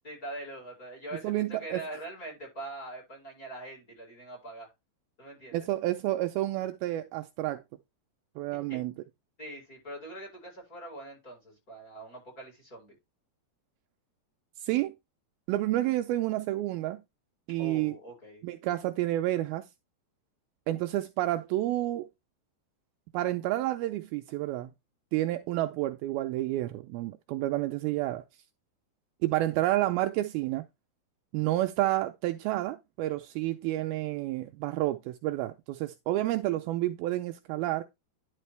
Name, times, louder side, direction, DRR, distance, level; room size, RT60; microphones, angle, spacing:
voice 1, 0.0-4.7 5.2-5.7 8.7-8.8 9.4-12.9 17.6-18.4, right 1 dB, 20° left, 4.7 m, -43 dB
voice 2, 1.2-1.8 5.5-7.6 8.4-8.9 14.6-14.9 15.5-17.0 17.5-17.9 18.4-19.6 20.7-22.1 23.1-24.7 25.1-28.2 29.2-30.6 31.3-37.8, right 15 dB, 90° right, 2.1 m, -30 dB
11.0 x 5.3 x 3.2 m
omnidirectional pair, 5.0 m